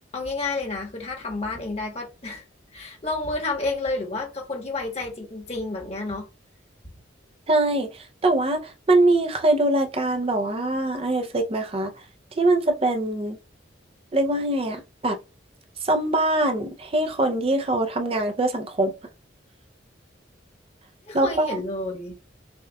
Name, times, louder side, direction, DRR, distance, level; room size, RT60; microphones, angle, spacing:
voice 1, 0.1-2.4 2.7-6.3 21.1-22.1, left 2 dB, 35° left, 1.2 m, -30 dB
voice 2, 7.5-11.9 12.4-13.4 14.1-15.2 15.8-18.9 21.1-21.6, right 2 dB, 30° right, 0.5 m, -23 dB
6.4 x 2.3 x 2.2 m
head